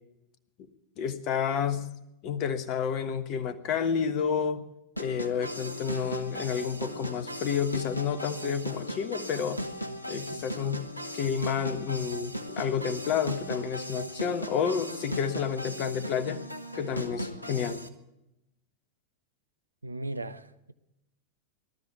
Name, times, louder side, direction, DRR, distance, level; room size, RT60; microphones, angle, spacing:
voice 1, 1.0-1.9 2.2-4.6 5.0-9.6 10.1-10.9 11.1-16.4 16.7-17.8, left 7 dB, 40° left, 1.3 m, -30 dB
sound 1, 5.0-17.9, equal, 85° left, 1.0 m, -37 dB
voice 2, 19.8-20.7, right 2 dB, 80° right, 0.7 m, -37 dB
18.5 x 12.5 x 6.1 m
figure-of-eight pair, 90°, 0 cm